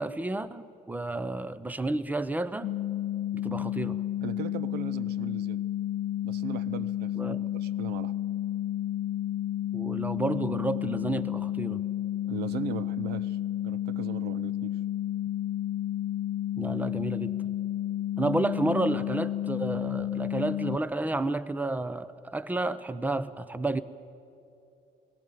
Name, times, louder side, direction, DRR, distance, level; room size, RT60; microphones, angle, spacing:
voice 1, 0.0-2.7 3.3-4.0 7.2-7.4 9.7-11.8 16.6-17.5 18.2-23.8, right 2 dB, 10° right, 15 dB, 0.7 m, -31 dB
sound 1, 2.6-20.8, left 12 dB, 45° left, 0.7 m, -31 dB
voice 2, 4.2-5.6 6.2-8.2 12.3-14.7, right 9 dB, 75° right, 18 dB, 0.7 m, -39 dB
19.5 x 17.0 x 9.2 m, 2.8 s
cardioid pair, 110°, 17 cm